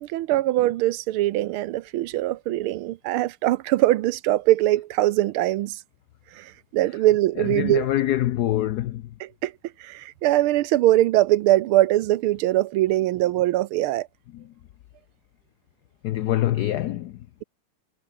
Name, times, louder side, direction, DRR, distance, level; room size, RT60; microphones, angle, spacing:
voice 1, 0.0-5.8 6.3-7.9 9.2-9.5 9.8-14.1, right 15 dB, 80° right, 1.5 m, -22 dB
voice 2, 7.4-9.1 14.3-14.4 16.0-17.3, left 13 dB, 85° left, 0.8 m, -25 dB
omnidirectional pair, 2.4 m